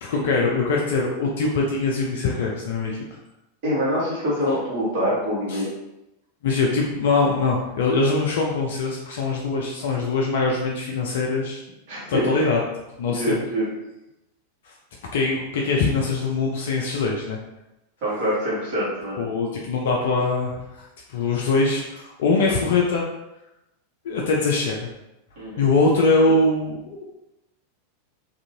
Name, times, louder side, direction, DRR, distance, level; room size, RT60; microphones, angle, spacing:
voice 1, 0.0-3.0 4.5-4.6 5.5-5.6 6.4-11.6 12.1-12.6 13.0-13.4 14.7-14.8 15.1-17.4 19.2-23.0 24.0-24.9 25.6-27.1, left 3 dB, 55° left, -1 dB, 0.4 m, -22 dB
voice 2, 3.6-5.7 11.9-12.3 13.1-13.6 18.0-19.2 25.4-25.7, equal, 45° right, -7 dB, 1.3 m, -25 dB
2.7 x 2.5 x 2.6 m, 0.90 s
figure-of-eight pair, 90°, 0 cm